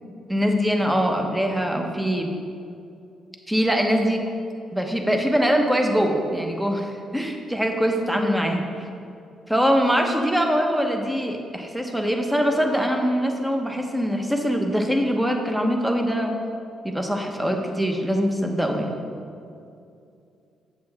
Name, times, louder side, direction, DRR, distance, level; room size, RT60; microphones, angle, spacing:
voice 1, 0.3-2.3 3.5-4.2 4.7-8.7 9.5-16.4 16.8-18.9, equal, 5° right, 3 dB, 0.9 m, -23 dB
7.9 x 7.4 x 3.5 m, 2.5 s
cardioid pair, 90°, 0 cm